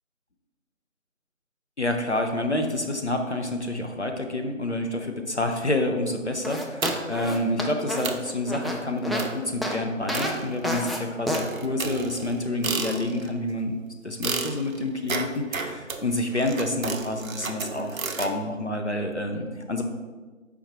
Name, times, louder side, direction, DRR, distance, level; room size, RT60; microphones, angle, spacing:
voice 1, 1.8-13.8 14.0-19.8, left 1 dB, 60° left, 4 dB, 0.5 m, -28 dB
sound 1, 6.4-9.3 9.6-9.8 10.1-10.3 10.6-11.0 11.3-11.4, equal, ahead, 0.3 m, -29 dB
sound 2, 6.8-7.3 7.7-7.8 8.0-8.4 9.2-9.5 10.1-10.9 11.3-13.4 14.2-18.4, right 4 dB, 85° right, 0.6 m, -32 dB
4.7 x 3.4 x 3.1 m, 1.3 s
figure-of-eight pair, 180°, 40 cm